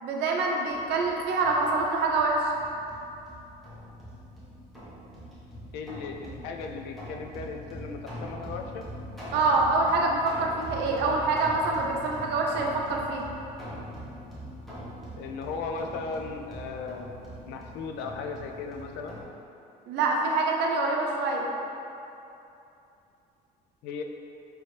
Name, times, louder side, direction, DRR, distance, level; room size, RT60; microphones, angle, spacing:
voice 1, 0.0-2.5 9.3-13.2 19.9-21.4, right 3 dB, 85° right, 0 dB, 0.6 m, -25 dB
sound 1, 0.7-19.2, equal, ahead, 1.2 m, -42 dB
voice 2, 5.7-8.8 15.2-17.0 17.5-19.2 23.8-24.0, left 4 dB, 90° left, 4 dB, 0.4 m, -36 dB
4.2 x 3.0 x 3.2 m, 2.8 s
cardioid pair, 110°, 17 cm